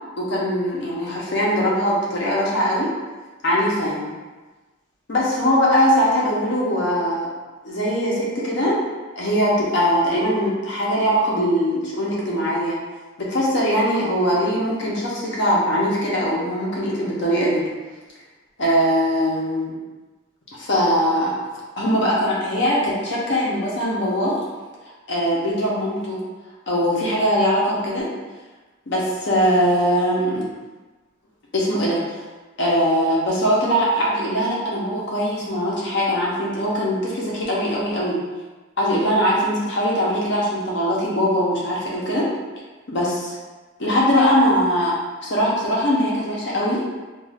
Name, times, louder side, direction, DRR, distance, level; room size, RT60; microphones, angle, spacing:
voice 1, 0.2-2.9 3.4-4.1 5.1-7.3 7.6-8.8 9.2-12.8 13.2-17.6 18.6-19.7 20.5-21.3 21.8-24.4 25.1-26.2 26.7-28.1 28.9-30.5 31.5-32.1 32.6-38.2 38.8-42.3 42.9-43.4 43.8-45.0 45.2-46.8, equal, 55° left, -5 dB, 0.7 m, -21 dB
2.3 x 2.3 x 3.3 m, 1.3 s
head